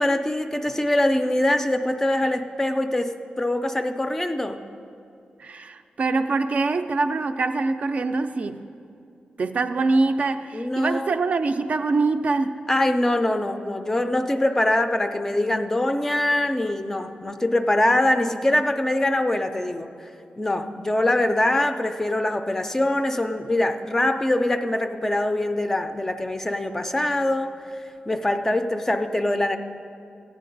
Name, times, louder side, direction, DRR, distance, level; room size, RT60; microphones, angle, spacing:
voice 1, 0.0-4.6 10.5-11.1 12.7-19.9 20.4-27.5 28.1-29.6, left 1 dB, 15° left, 7 dB, 0.4 m, -23 dB
voice 2, 5.4-8.7 9.4-12.6, right 3 dB, 50° right, 8 dB, 0.4 m, -24 dB
14.5 x 9.2 x 3.9 m, 2.5 s
wide cardioid pair, 165°, 3 cm